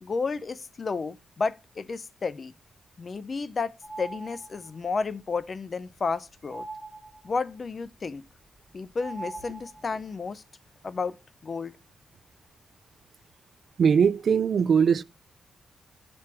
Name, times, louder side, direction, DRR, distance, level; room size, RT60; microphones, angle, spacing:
voice 1, 0.0-2.5 3.0-6.6 7.2-8.2 8.7-10.4 10.8-11.2 11.4-11.7, left 4 dB, 40° left, 0.4 m, -32 dB
sound 1, 3.8-4.8 6.5-7.5 9.0-10.1, right 3 dB, 20° right, 1.7 m, -41 dB
voice 2, 13.8-15.0, right 6 dB, 60° right, 0.3 m, -21 dB
6.1 x 4.4 x 5.8 m
cardioid pair, 110°, 0 cm